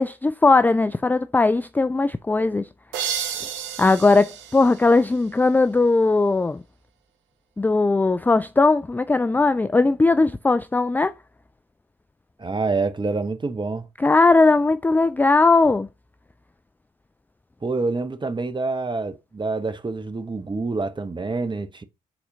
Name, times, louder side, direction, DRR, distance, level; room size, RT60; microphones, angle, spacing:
voice 1, 0.0-2.7 3.8-6.6 7.6-11.1 14.0-15.9, left 3 dB, 10° left, 0.3 m, -18 dB
sound 1, 2.9-5.7, right 8 dB, 65° right, 0.8 m, -32 dB
voice 2, 12.4-13.9 17.6-21.8, right 3 dB, 20° right, 1.0 m, -27 dB
7.7 x 4.3 x 4.0 m
figure-of-eight pair, 40°, 21 cm